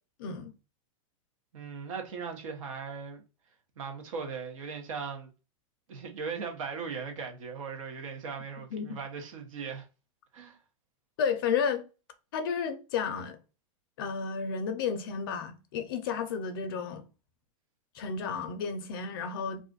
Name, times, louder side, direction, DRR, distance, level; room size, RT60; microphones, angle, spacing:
voice 1, 0.2-0.5 8.7-8.8 11.2-11.8 12.3-13.4 14.0-17.0 17.9-19.6, left 6 dB, 40° left, 0.5 m, -32 dB
voice 2, 1.5-3.2 3.8-5.3 5.9-9.9 10.3-10.6, right 5 dB, 65° right, 1.0 m, -38 dB
2.5 x 2.4 x 3.8 m
supercardioid pair, 165°, 18 cm